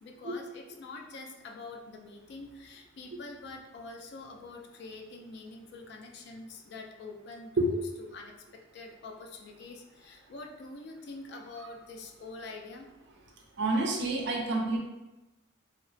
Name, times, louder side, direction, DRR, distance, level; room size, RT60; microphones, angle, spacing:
voice 1, 0.0-7.8 8.1-12.9, left 3 dB, 55° left, 2 dB, 0.3 m, -45 dB
voice 2, 13.6-14.8, right 2 dB, 55° right, 1 dB, 0.4 m, -28 dB
2.9 x 2.0 x 2.5 m, 1.0 s
head